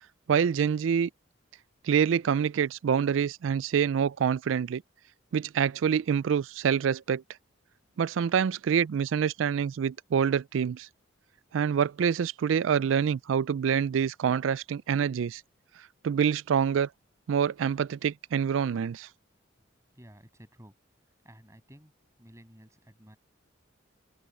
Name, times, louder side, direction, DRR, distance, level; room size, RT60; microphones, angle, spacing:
voice 1, 0.3-1.1 1.8-4.8 5.3-7.2 8.0-10.9 11.5-15.4 16.0-16.9 17.3-19.1, right 7 dB, 75° right, 0.3 m, -26 dB
voice 2, 19.9-20.7 21.0-21.9 22.2-23.2, equal, 15° right, 7.2 m, -53 dB
open air
head